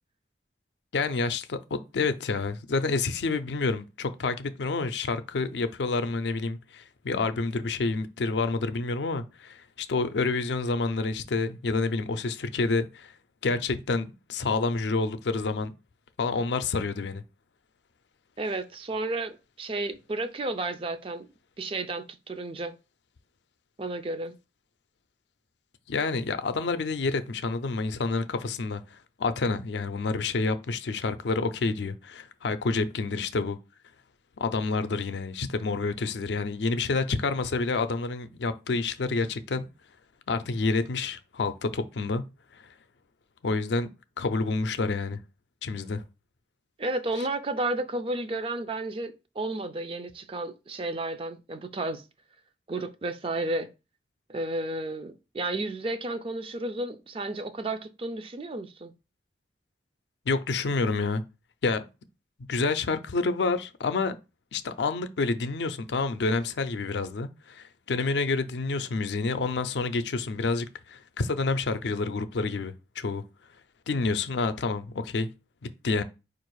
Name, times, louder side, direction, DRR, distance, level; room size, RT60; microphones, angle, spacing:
voice 1, 0.9-13.1 13.4-15.7 16.2-17.2 25.9-33.6 34.4-39.7 40.3-42.2 42.5-42.7 43.4-43.9 44.2-45.2 45.6-46.0 60.3-61.2 61.6-61.8 62.5-64.2 64.5-73.2 73.9-75.3 75.6-76.0, left 3 dB, 80° left, 0.5 m, -28 dB
voice 2, 18.4-21.3 21.6-22.8 23.8-24.4 46.8-52.0 52.7-53.7 54.3-58.9, right 2 dB, 30° right, 0.4 m, -32 dB
4.7 x 2.5 x 4.6 m
head